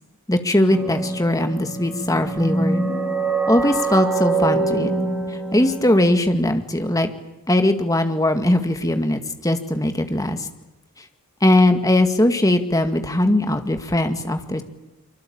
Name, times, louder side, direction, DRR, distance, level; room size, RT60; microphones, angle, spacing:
voice 1, 0.3-2.8 3.5-4.9 5.3-7.1 7.5-10.5 11.4-14.6, left 1 dB, 15° left, 7 dB, 2.0 m, -20 dB
sound 1, 0.7-6.1, right 3 dB, 10° right, 7.6 m, -24 dB
25.5 x 24.5 x 8.8 m, 1.0 s
head